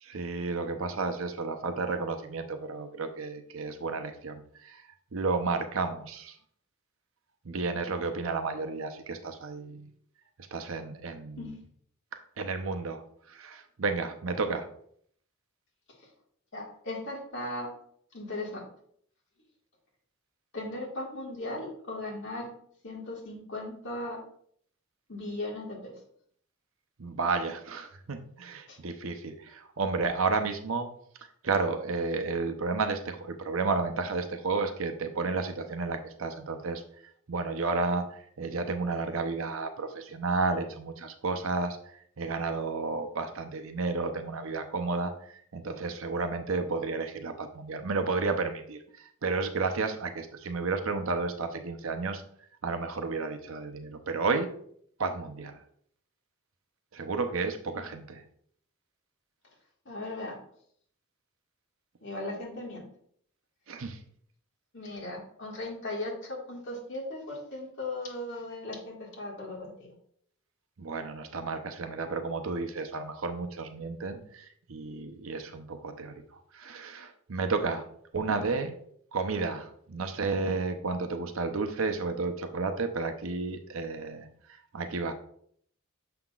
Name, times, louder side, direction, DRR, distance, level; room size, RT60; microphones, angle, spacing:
voice 1, 0.0-4.8 5.1-6.4 7.4-9.9 10.5-11.5 12.4-14.7 27.0-30.9 31.4-36.8 37.3-41.8 42.2-52.2 52.6-54.5 55.0-55.6 56.9-58.2 63.7-64.0 70.8-76.2 76.5-77.9 78.1-78.7 79.1-85.1, right 4 dB, 65° right, 7 dB, 0.7 m, -32 dB
voice 2, 16.5-17.7 18.1-18.6 20.5-22.5 22.8-24.2 25.1-25.9 28.7-28.8 57.6-57.9 59.9-60.4 62.0-62.9 64.7-70.0, left 2 dB, 60° left, -2 dB, 1.9 m, -37 dB
6.8 x 5.7 x 2.4 m, 0.64 s
head